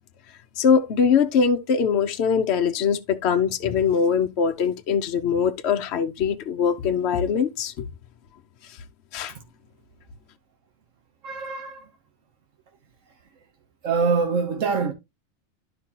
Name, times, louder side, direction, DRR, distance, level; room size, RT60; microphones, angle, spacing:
voice 1, 0.6-7.9 9.1-9.3, left 6 dB, 65° left, 0.9 m, -22 dB
voice 2, 11.2-11.9 13.4-13.5 13.8-14.9, right 5 dB, 85° right, 1.4 m, -25 dB
12.0 x 5.1 x 2.8 m
omnidirectional pair, 1.3 m